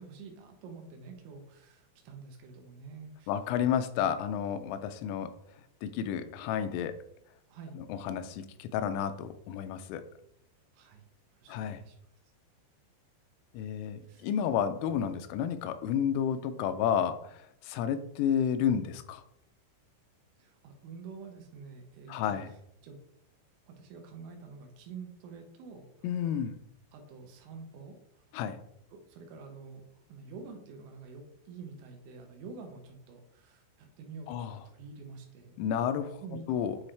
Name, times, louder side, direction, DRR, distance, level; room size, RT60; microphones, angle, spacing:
voice 1, 0.0-3.3 7.5-7.8 10.7-11.1 11.3-12.0 14.1-14.3 20.4-22.6 22.8-23.0 23.7-26.2 26.9-28.2 28.9-29.8 30.1-35.6 36.2-36.4, right 4 dB, 80° right, 3 dB, 3.3 m, -48 dB
voice 2, 3.3-5.3 5.8-7.0 7.9-10.0 11.5-11.8 13.5-17.2 17.6-19.2 22.1-22.5 26.0-26.5 28.3-28.6 34.3-34.5 35.6-36.2 36.5-36.8, left 8 dB, 90° left, 10 dB, 3.2 m, -31 dB
9.8 x 3.8 x 3.3 m, 0.75 s
omnidirectional pair, 5.7 m